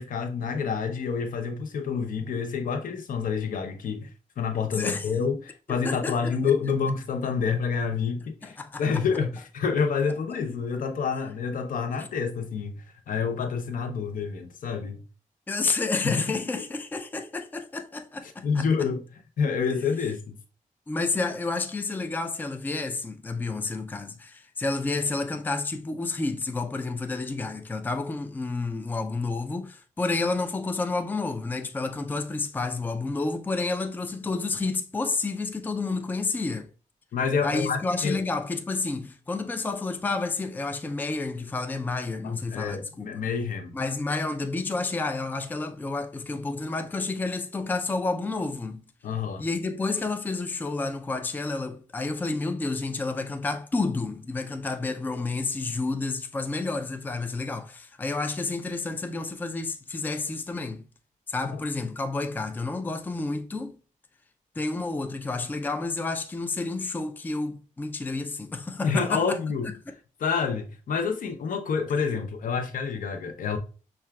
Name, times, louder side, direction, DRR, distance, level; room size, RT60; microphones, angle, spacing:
voice 1, 0.0-4.1 4.4-12.7 13.1-15.0 16.0-16.4 18.4-20.4 37.1-38.2 42.2-43.8 49.0-49.4 68.8-69.7 70.2-73.6, left 5 dB, 75° left, 0.6 m, -28 dB
voice 2, 4.7-5.1 5.8-6.8 8.4-9.0 15.5-18.7 20.9-36.7 37.4-43.1 43.7-48.8 49.4-60.8 61.3-63.8 64.6-69.4 69.9-70.0, left 3 dB, 15° left, 0.3 m, -30 dB
5.7 x 2.2 x 2.2 m
cardioid pair, 100°, 14 cm